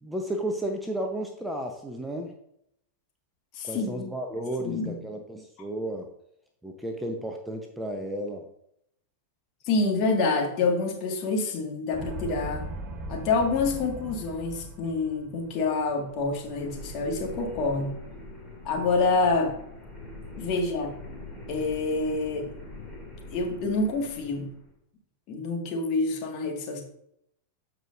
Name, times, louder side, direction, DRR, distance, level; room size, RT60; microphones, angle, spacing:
voice 1, 0.0-2.3 3.6-6.1 6.6-8.4, right 1 dB, 5° right, 3 dB, 1.0 m, -33 dB
voice 2, 3.5-4.0 4.6-5.0 9.6-12.7 13.1-17.9 18.6-19.6 20.4-20.9 21.5-22.6 23.3-24.5 25.3-26.8, left 3 dB, 40° left, 1 dB, 2.0 m, -27 dB
sound 1, 11.9-15.5, right 1 dB, 25° right, 1.2 m, -38 dB
sound 2, 15.2-24.7, left 2 dB, 10° left, 2.8 m, -43 dB
14.0 x 4.9 x 2.6 m, 0.73 s
figure-of-eight pair, 90°, 0 cm